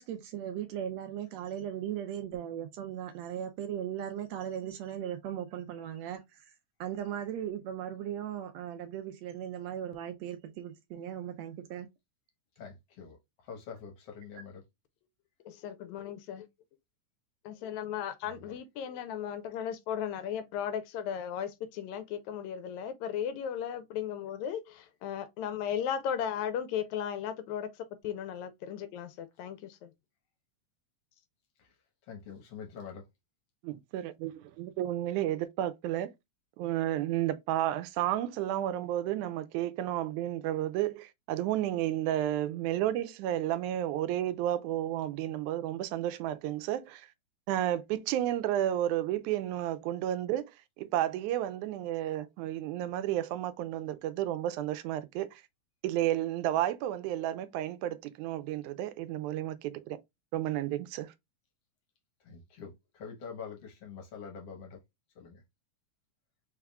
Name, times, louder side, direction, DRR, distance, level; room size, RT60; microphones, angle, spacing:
voice 1, 0.0-6.5 6.8-11.9, right 10 dB, 75° right, 1.7 m, -38 dB
voice 2, 12.6-13.2 13.4-14.6 18.5-18.6 31.6-31.7 32.1-33.0 62.2-64.8 65.2-65.4, left 6 dB, 65° left, 1.9 m, -45 dB
voice 3, 15.5-16.5 17.5-29.9, left 9 dB, 80° left, 1.9 m, -36 dB
voice 4, 33.6-36.1 36.6-47.1 47.5-50.5 50.8-55.4 55.8-60.0 60.3-61.1, right 12 dB, 90° right, 2.0 m, -32 dB
4.6 x 3.6 x 2.2 m
omnidirectional pair, 3.4 m